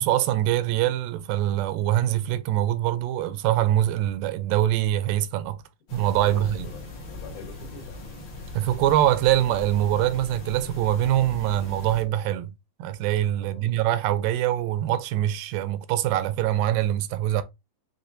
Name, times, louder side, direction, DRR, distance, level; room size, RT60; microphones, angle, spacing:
voice 1, 0.0-5.6 5.9-6.7 8.5-12.5 12.8-17.4, right 13 dB, 90° right, 2.2 m, -24 dB
sound 1, 5.9-12.0, left 2 dB, 50° left, 1.6 m, -39 dB
voice 2, 6.2-8.2 13.4-13.9, left 6 dB, 75° left, 2.8 m, -46 dB
6.2 x 2.9 x 2.6 m
omnidirectional pair, 3.8 m